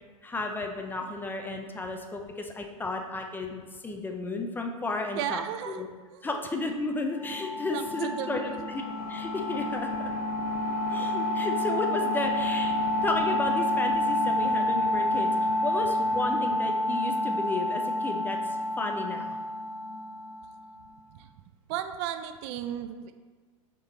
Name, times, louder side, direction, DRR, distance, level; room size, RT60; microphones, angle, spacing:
voice 1, 0.2-5.4 5.7-5.9 6.2-8.8 9.1-10.1 10.9-12.7 13.0-18.4 18.8-19.4, left 2 dB, 10° left, 3 dB, 0.6 m, -33 dB
voice 2, 5.1-5.8 6.1-6.4 7.7-8.7 10.6-10.9 21.1-21.3 21.7-23.1, right 10 dB, 50° right, 9 dB, 0.5 m, -35 dB
sound 1, 7.2-20.7, left 1 dB, 85° left, 1.1 m, -28 dB
7.0 x 3.7 x 3.9 m, 1.5 s
hypercardioid pair, 120°, 18 cm